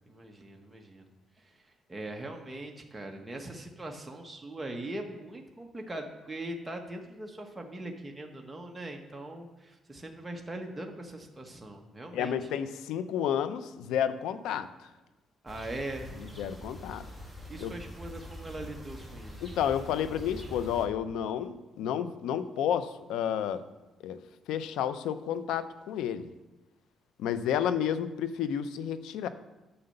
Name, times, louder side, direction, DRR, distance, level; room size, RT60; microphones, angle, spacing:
voice 1, 0.1-1.1 1.4-12.5 15.4-16.6 17.5-19.5, right 1 dB, 15° right, 2 dB, 1.3 m, -41 dB
voice 2, 12.1-14.9 16.4-17.0 17.6-17.7 19.4-23.6 24.0-24.2 24.5-26.3 27.2-29.3, left 9 dB, 90° left, 12 dB, 0.6 m, -31 dB
sound 1, 15.5-20.9, equal, 5° left, 2.4 m, -44 dB
9.7 x 6.7 x 6.7 m, 1.1 s
cardioid pair, 90°, 0 cm